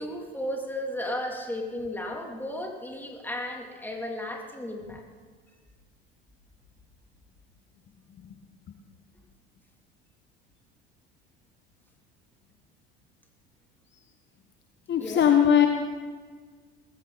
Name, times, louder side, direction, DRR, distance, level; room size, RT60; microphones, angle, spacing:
voice 1, 0.0-5.0 15.0-15.3, left 1 dB, 5° left, 1 dB, 3.1 m, -34 dB
voice 2, 14.9-15.7, left 9 dB, 35° left, 5 dB, 1.3 m, -19 dB
20.0 x 15.5 x 4.2 m, 1.5 s
figure-of-eight pair, 65°, 30 cm